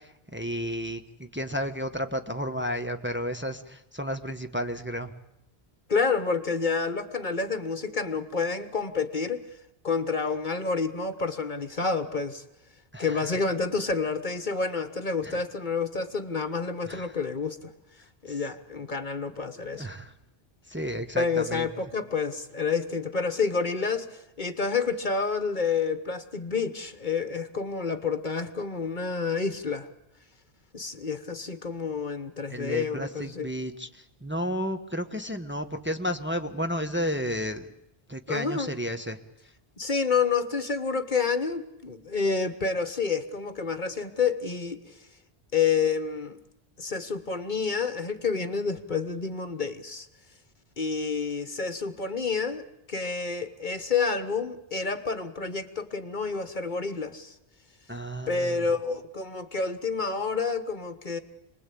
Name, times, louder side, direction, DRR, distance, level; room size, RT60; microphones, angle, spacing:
voice 1, 0.3-1.0 1.3-5.1 12.9-13.2 15.2-15.4 16.9-17.1 19.7-20.1 20.7-21.7 32.5-33.9 34.2-37.6 38.1-39.2 57.9-58.6, equal, 10° right, 5 dB, 1.3 m, -32 dB
voice 2, 5.9-9.4 9.8-12.4 13.0-17.7 18.2-19.9 21.2-29.9 30.7-33.5 38.3-38.7 39.8-44.9 45.5-46.4 46.8-50.1 50.8-57.3 58.3-61.2, left 5 dB, 50° left, 10 dB, 1.3 m, -29 dB
28.0 x 21.0 x 8.5 m, 0.85 s
omnidirectional pair, 1.1 m